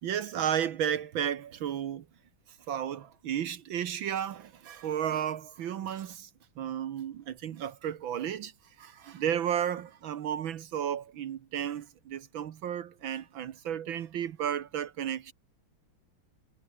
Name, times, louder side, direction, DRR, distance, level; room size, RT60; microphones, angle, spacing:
voice 1, 0.0-2.1 2.7-6.3 6.6-8.5 8.8-15.3, right 9 dB, 70° right, 1.8 m, -33 dB
omnidirectional pair, 2.3 m